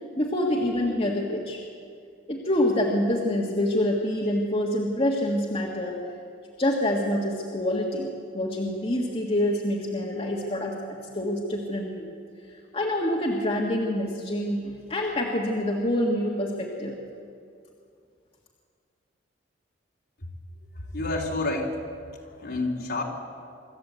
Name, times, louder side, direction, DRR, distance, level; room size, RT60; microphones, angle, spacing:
voice 1, 0.2-1.6 2.3-6.0 6.6-8.1 8.3-12.1 12.7-17.0, left 1 dB, 30° left, -2 dB, 1.8 m, -26 dB
voice 2, 20.7-21.8 22.4-23.0, left 2 dB, 55° left, -1 dB, 3.5 m, -29 dB
25.0 x 13.5 x 8.3 m, 2.3 s
head